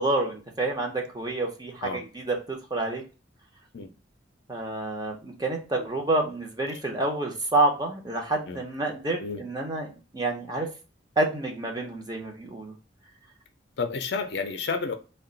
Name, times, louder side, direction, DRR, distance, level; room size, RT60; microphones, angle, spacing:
voice 1, 0.0-3.0 4.5-9.9 10.1-10.7 11.2-12.7, right 2 dB, 20° right, 0.6 m, -28 dB
voice 2, 13.8-14.9, left 4 dB, 60° left, 0.4 m, -30 dB
2.4 x 2.2 x 3.6 m
head